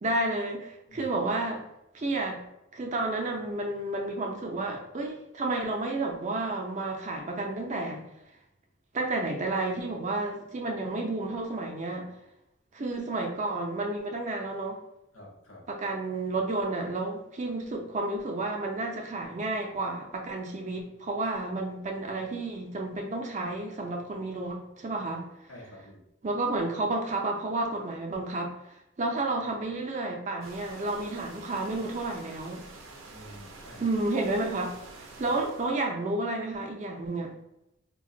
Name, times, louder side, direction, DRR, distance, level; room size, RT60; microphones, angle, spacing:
voice 1, 0.0-1.6 1.9-2.4 2.7-8.1 8.9-12.1 12.7-14.8 15.7-25.3 26.2-28.5 29.0-32.6 33.8-34.7 35.0-37.3, right 2 dB, 35° right, 2 dB, 0.4 m, -31 dB
voice 2, 15.1-15.7 25.5-26.0 33.1-34.0 35.2-35.3, equal, 80° left, -2 dB, 0.8 m, -49 dB
sound 1, 30.4-35.8, right 3 dB, 85° right, 0.5 m, -47 dB
2.4 x 2.2 x 3.7 m, 0.84 s
head